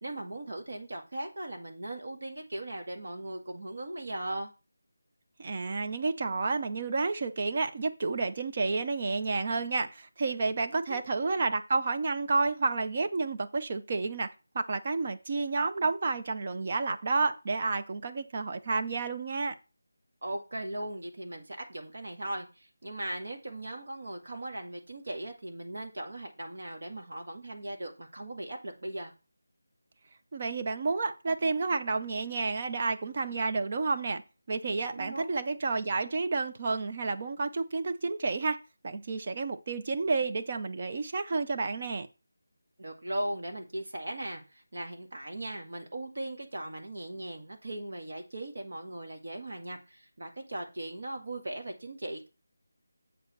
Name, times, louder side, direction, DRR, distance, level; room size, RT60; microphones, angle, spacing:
voice 1, 0.0-4.5 10.9-11.1 20.2-29.1 34.9-35.4 42.8-52.3, right 1 dB, 45° right, 1.7 m, -38 dB
voice 2, 5.4-14.3 14.5-19.6 30.3-34.2 34.5-38.6 38.8-42.1, right 3 dB, 20° right, 0.5 m, -30 dB
7.7 x 5.0 x 5.6 m
figure-of-eight pair, 180°, 0 cm